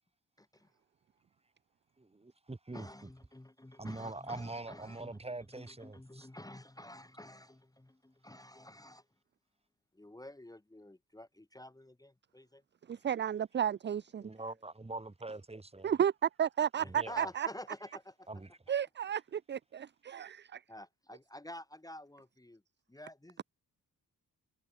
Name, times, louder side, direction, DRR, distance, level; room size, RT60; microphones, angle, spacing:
voice 1, 0.4-0.7 2.7-5.2 5.5-9.1 9.9-12.6 17.1-18.3 20.7-22.6 22.9-23.4, left 1 dB, 10° left, 1.8 m, -50 dB
voice 2, 2.0-2.9 3.8-6.3 14.2-15.9 16.8-17.3 18.3-18.5, right 2 dB, 15° right, 3.9 m, -43 dB
voice 3, 12.9-14.3 15.8-17.5 18.7-20.6, right 9 dB, 35° right, 0.4 m, -33 dB
cardioid pair, 110°, 35 cm